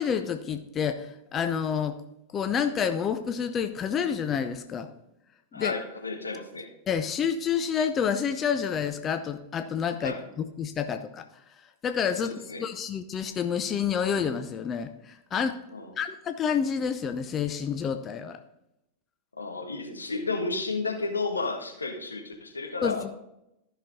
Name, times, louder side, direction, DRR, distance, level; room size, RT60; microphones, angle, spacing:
voice 1, 0.0-2.0 2.3-4.9 5.5-5.7 6.9-11.2 11.8-15.6 16.0-18.4 22.8-23.1, left 7 dB, 25° left, 8 dB, 0.6 m, -29 dB
voice 2, 5.5-6.7 10.0-10.2 12.2-12.6 15.7-15.9 19.4-23.1, left 3 dB, 80° left, 3 dB, 1.4 m, -32 dB
13.5 x 6.1 x 4.0 m, 0.84 s
figure-of-eight pair, 90°, 0 cm